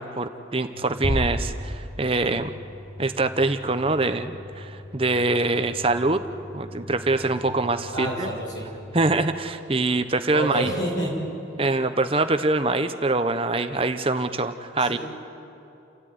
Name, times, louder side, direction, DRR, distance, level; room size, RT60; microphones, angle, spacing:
voice 1, 0.0-2.5 3.0-6.2 6.5-8.3 8.9-10.7 11.6-15.0, right 2 dB, 30° right, 9 dB, 0.8 m, -24 dB
sound 1, 0.7-9.4, left 1 dB, 20° left, 4.1 m, -43 dB
sound 2, 1.0-2.6, equal, 45° left, 3.8 m, -29 dB
voice 2, 7.9-8.7 10.3-11.1 14.9-15.0, right 1 dB, 75° left, -2 dB, 6.6 m, -28 dB
29.0 x 13.5 x 9.4 m, 2.8 s
head